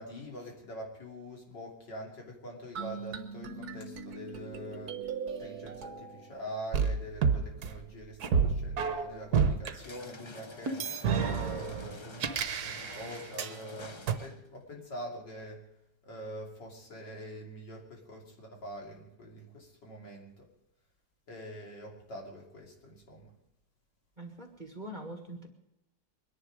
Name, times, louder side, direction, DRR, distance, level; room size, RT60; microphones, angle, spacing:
voice 1, 0.0-5.1 5.4-10.9 11.2-15.7 16.0-20.5 21.3-23.3, equal, 70° left, 0 dB, 3.5 m, -44 dB
sound 1, 2.8-6.3 6.7-9.7 10.7-13.6 14.1-14.2, right 6 dB, 60° right, 1.4 m, -32 dB
sound 2, 9.8-14.5, left 2 dB, 45° left, 0.3 m, -48 dB
voice 2, 24.2-25.5, right 1 dB, 25° right, 4 dB, 1.7 m, -44 dB
23.0 x 10.5 x 5.0 m, 0.87 s
omnidirectional pair, 2.0 m